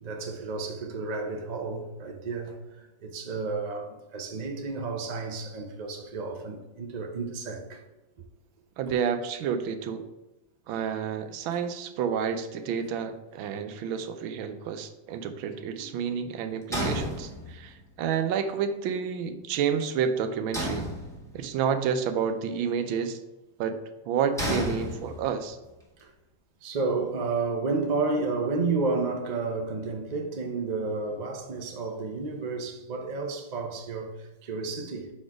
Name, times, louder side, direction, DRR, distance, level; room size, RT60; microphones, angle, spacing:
voice 1, 0.0-7.8 15.8-15.9 26.0-26.1 26.6-35.1, right 3 dB, 60° right, 0.4 m, -31 dB
voice 2, 8.8-10.0 10.7-20.9 21.3-23.2 23.6-23.8 24.0-25.6, right 7 dB, 90° right, 1.4 m, -30 dB
sound 1, 16.7-17.8 20.5-21.6 24.4-25.5, equal, ahead, 0.9 m, -32 dB
5.9 x 4.3 x 4.7 m
omnidirectional pair, 2.1 m